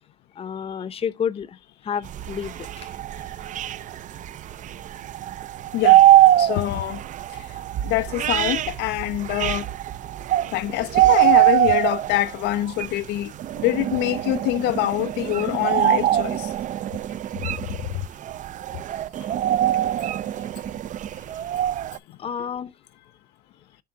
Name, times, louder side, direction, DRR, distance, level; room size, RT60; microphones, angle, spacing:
voice 1, 0.4-1.6 1.8-2.9 22.2-22.7, left 7 dB, 35° left, 0.7 m, -30 dB
sound 1, 2.1-22.0, right 13 dB, 50° right, 0.4 m, -22 dB
voice 2, 6.4-7.0 7.8-9.7 10.5-13.3 13.6-16.5 17.9-18.0, left 16 dB, 85° left, 0.5 m, -25 dB
7.5 x 2.5 x 5.7 m
cardioid pair, 110°, 17 cm